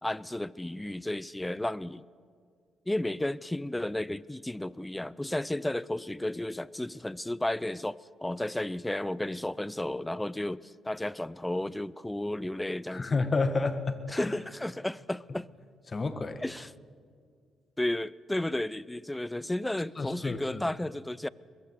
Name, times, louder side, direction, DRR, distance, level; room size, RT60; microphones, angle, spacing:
voice 1, 0.0-2.0 2.9-13.2 14.1-15.5 16.4-16.7 17.8-21.3, left 1 dB, 10° left, 20 dB, 0.5 m, -33 dB
voice 2, 12.9-14.3 15.9-16.4 20.0-20.7, left 3 dB, 30° left, 10 dB, 1.7 m, -30 dB
22.5 x 22.0 x 6.7 m, 2.1 s
cardioid pair, 90°, 0 cm